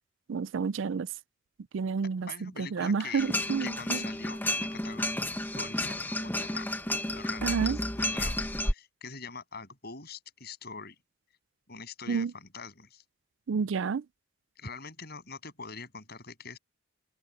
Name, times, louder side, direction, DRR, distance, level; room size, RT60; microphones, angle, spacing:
voice 1, 0.3-1.1 1.7-4.0 7.4-7.8 12.1-12.3 13.5-14.0, right 5 dB, 65° right, 0.4 m, -30 dB
voice 2, 2.3-3.3 3.6-5.1 5.5-6.7 7.1-11.0 11.7-13.0 14.6-16.6, left 5 dB, 50° left, 7.9 m, -44 dB
sound 1, 3.2-8.7, left 1 dB, 10° left, 1.3 m, -31 dB
open air
head